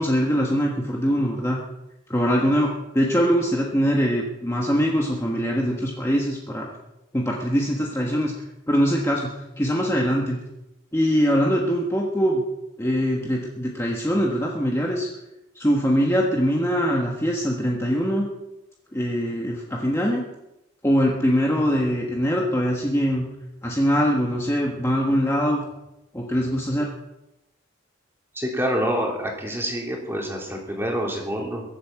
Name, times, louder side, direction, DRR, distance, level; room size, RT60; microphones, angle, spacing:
voice 1, 0.0-1.6 2.1-6.7 7.1-8.3 8.7-10.4 10.9-12.5 12.8-15.1 15.5-18.3 18.9-20.2 20.8-23.3 23.6-25.6 26.1-26.9, equal, 15° left, -1 dB, 1.4 m, -22 dB
voice 2, 28.3-31.6, equal, 10° right, -1 dB, 3.2 m, -27 dB
22.0 x 8.6 x 5.9 m, 0.93 s
head